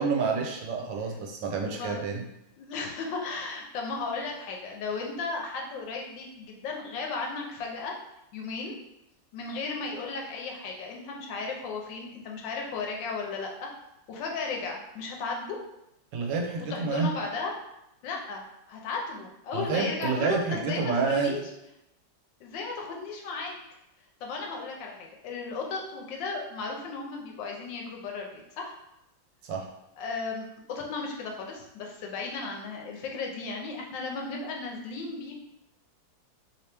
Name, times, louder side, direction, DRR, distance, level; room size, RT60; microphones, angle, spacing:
voice 1, 0.0-2.2 16.1-17.1 19.5-21.3 29.4-29.7, right 4 dB, 80° right, 1 dB, 1.4 m, -28 dB
voice 2, 1.7-2.1 2.6-7.9 8.3-8.7 9.3-13.7 14.1-15.6 16.7-17.5 18.0-18.4 18.7-21.4 22.4-23.6 24.2-28.7 30.0-35.4, left 4 dB, 80° left, 1 dB, 1.3 m, -35 dB
3.2 x 2.9 x 3.2 m, 0.85 s
omnidirectional pair, 2.0 m